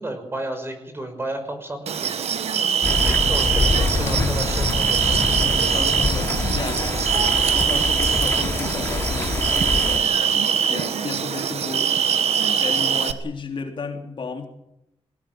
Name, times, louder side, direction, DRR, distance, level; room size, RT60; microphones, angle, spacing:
voice 1, 0.0-2.2 3.0-5.9, right 1 dB, 20° right, 6 dB, 5.7 m, -33 dB
sound 1, 1.9-13.1, right 7 dB, 80° right, 1.5 m, -22 dB
sound 2, 2.8-10.0, left 3 dB, 25° left, 2.8 m, -25 dB
voice 2, 3.4-4.2 5.7-10.1 10.3-11.9 12.6-14.5, left 5 dB, 50° left, 4 dB, 3.2 m, -33 dB
21.5 x 17.5 x 9.0 m, 0.84 s
wide cardioid pair, 135°, 11 cm